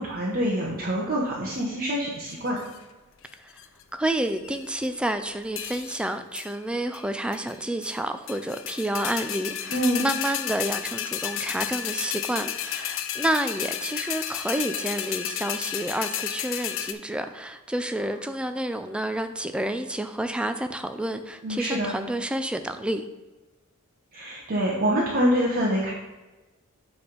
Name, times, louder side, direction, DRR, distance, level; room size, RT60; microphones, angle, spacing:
voice 1, 0.0-2.6 9.7-10.0 21.4-22.0 24.1-25.9, equal, 40° right, -4 dB, 1.0 m, -25 dB
sound 1, 2.3-2.8 3.3-3.8 4.3-4.9 5.6-6.1 6.3-6.5 6.9-7.0 7.3-8.0 8.3-16.9, left 10 dB, 60° left, 0.5 m, -32 dB
voice 2, 3.9-23.0, right 1 dB, 5° right, 8 dB, 0.3 m, -29 dB
8.4 x 3.5 x 5.2 m, 1.2 s
head